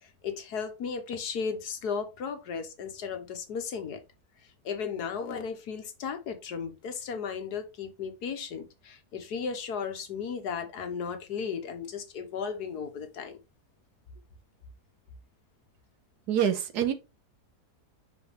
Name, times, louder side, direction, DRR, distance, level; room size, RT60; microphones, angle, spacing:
voice 1, 0.0-4.0 4.6-13.4, left 6 dB, 75° left, 1.6 m, -35 dB
voice 2, 16.3-16.9, right 9 dB, 80° right, 1.4 m, -26 dB
5.9 x 5.3 x 3.1 m
omnidirectional pair, 1.7 m